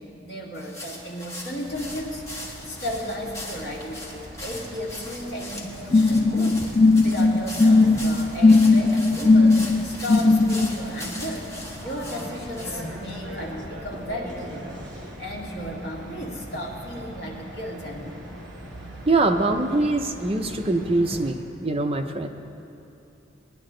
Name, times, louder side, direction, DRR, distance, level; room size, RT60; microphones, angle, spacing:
voice 1, 0.0-6.7 7.0-11.5 11.8-18.2, equal, 60° left, -3 dB, 2.2 m, -34 dB
sound 1, 0.5-12.9, left 1 dB, 15° left, 1.5 m, -40 dB
sound 2, 1.7-21.3, equal, 60° right, 2.8 m, -40 dB
sound 3, 5.9-10.7, left 3 dB, 40° left, 0.6 m, -17 dB
voice 2, 19.1-22.3, right 2 dB, 30° right, 5 dB, 0.6 m, -23 dB
19.5 x 10.5 x 3.8 m, 2.9 s
head